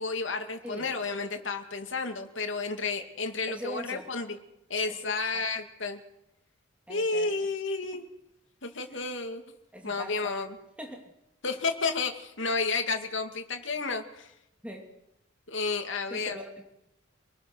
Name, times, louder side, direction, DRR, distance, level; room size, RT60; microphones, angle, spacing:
voice 1, 0.0-4.4 4.7-6.0 6.9-8.1 8.6-9.4 9.8-10.6 11.4-14.3 15.5-16.4, left 4 dB, 65° left, 5 dB, 2.5 m, -31 dB
voice 2, 0.6-0.9 3.5-4.1 4.9-5.4 6.9-7.3 9.7-10.5 10.8-11.1 14.6-14.9 16.1-16.6, equal, 5° right, 2 dB, 2.8 m, -42 dB
26.5 x 20.0 x 6.3 m, 0.86 s
head